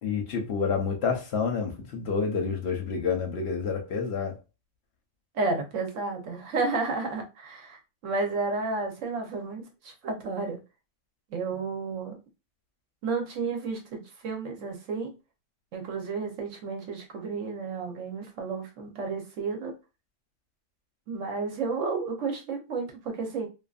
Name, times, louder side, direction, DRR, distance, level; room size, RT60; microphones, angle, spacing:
voice 1, 0.0-4.4, left 5 dB, 65° left, 0.9 m, -28 dB
voice 2, 5.3-10.6 11.3-12.2 13.0-15.1 15.7-19.7 21.1-23.5, right 4 dB, 85° right, 1.1 m, -32 dB
2.5 x 2.5 x 2.4 m
omnidirectional pair, 1.3 m